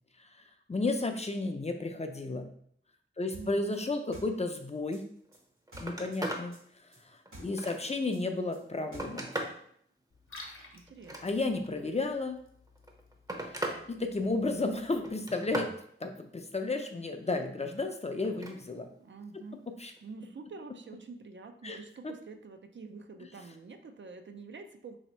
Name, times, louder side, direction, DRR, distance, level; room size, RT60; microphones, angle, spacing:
voice 1, 0.7-2.5 3.2-5.0 5.8-6.6 7.1-9.3 11.2-12.4 13.4-15.7 16.0-18.9 19.8-19.9 21.6-21.8 22.0-22.1, left 3 dB, 30° left, 5 dB, 0.4 m, -33 dB
voice 2, 3.3-3.7 7.3-8.2 10.7-11.4 19.0-19.7 20.0-25.0, right 4 dB, 60° right, 7 dB, 0.4 m, -47 dB
sound 1, 3.3-6.2 6.5-9.4, equal, 80° right, 1.4 m, -51 dB
Telephone, 5.2-5.4 5.7-6.5 7.0-8.0 8.6-9.6 10.9-11.7 12.7-13.8 14.2-14.6 15.0-15.8 18.2-18.6 20.0-20.1, right 1 dB, 15° right, 0.6 m, -38 dB
Liquid, 10.1-15.1, left 2 dB, 75° left, 0.7 m, -54 dB
2.9 x 2.8 x 4.2 m, 0.65 s
wide cardioid pair, 60°, 21 cm